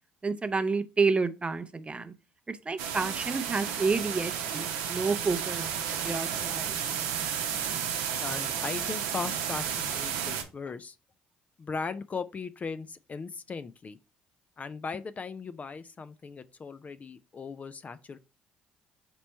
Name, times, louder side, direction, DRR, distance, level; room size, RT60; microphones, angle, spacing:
voice 1, 0.2-2.1 2.5-5.6 6.0-6.8, right 4 dB, 25° right, 0.5 m, -29 dB
sound 1, 2.8-10.4, right 8 dB, 80° right, 0.7 m, -32 dB
voice 2, 8.2-11.0 11.6-14.0 14.6-18.2, left 5 dB, 35° left, 0.3 m, -38 dB
4.1 x 3.0 x 4.3 m
hypercardioid pair, 55°, 5 cm